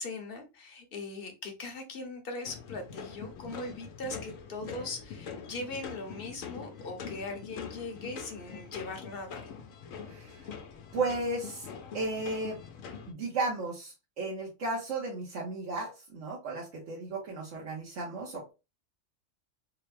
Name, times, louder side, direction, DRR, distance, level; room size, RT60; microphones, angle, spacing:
voice 1, 0.0-9.5, left 2 dB, 50° left, 4 dB, 0.9 m, -40 dB
sound 1, 2.4-13.1, left 6 dB, 80° left, 1.0 m, -44 dB
voice 2, 10.1-10.5 10.9-11.7 11.9-12.6 13.1-18.5, right 2 dB, 65° right, -4 dB, 1.3 m, -34 dB
3.6 x 2.2 x 3.3 m, 0.27 s
omnidirectional pair, 1.4 m